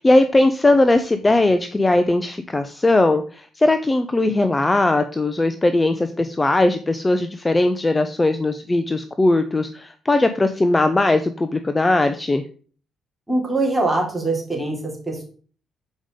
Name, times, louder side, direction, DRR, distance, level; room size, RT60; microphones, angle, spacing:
voice 1, 0.0-12.4, left 2 dB, 20° left, 9 dB, 0.5 m, -19 dB
voice 2, 13.3-15.2, right 2 dB, 10° right, -2 dB, 3.0 m, -23 dB
7.2 x 5.0 x 3.7 m, 0.41 s
cardioid pair, 90°, 0 cm